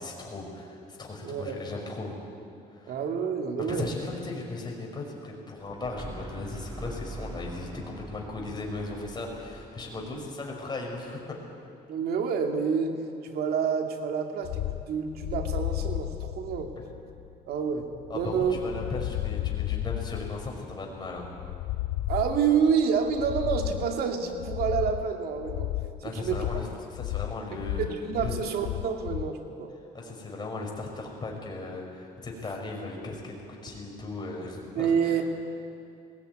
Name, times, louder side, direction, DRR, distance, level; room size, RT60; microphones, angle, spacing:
voice 1, 0.0-2.2 2.7-3.0 3.6-11.4 18.1-21.3 26.0-27.8 28.2-28.3 29.9-35.2, left 3 dB, 25° left, 0 dB, 5.3 m, -37 dB
voice 2, 1.2-1.6 2.9-3.9 10.1-10.3 11.9-13.0 13.2-16.7 17.5-17.9 18.1-18.7 22.1-25.7 26.1-26.5 27.7-29.7 34.7-35.2, right 6 dB, 65° right, 4 dB, 2.4 m, -28 dB
sound 1, 5.6-11.4, right 1 dB, 25° right, 3.6 m, -43 dB
sound 2, 14.4-29.4, left 15 dB, 75° left, 0.5 m, -34 dB
20.0 x 17.0 x 9.3 m, 2.5 s
cardioid pair, 110°, 17 cm